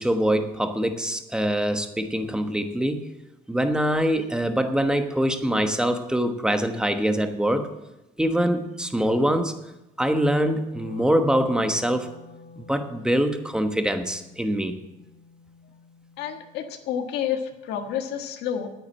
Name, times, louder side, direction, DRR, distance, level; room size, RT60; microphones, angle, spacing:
voice 1, 0.0-3.1 3.5-7.7 8.2-9.6 10.0-12.1 12.6-14.7, equal, 5° right, 7 dB, 1.2 m, -24 dB
Wind instrument woodwind instrument, 10.5-16.7, left 4 dB, 45° left, 3.2 m, -48 dB
voice 2, 16.2-18.7, left 9 dB, 80° left, 6 dB, 1.6 m, -29 dB
9.7 x 8.9 x 7.4 m, 0.97 s
cardioid pair, 110°, 17 cm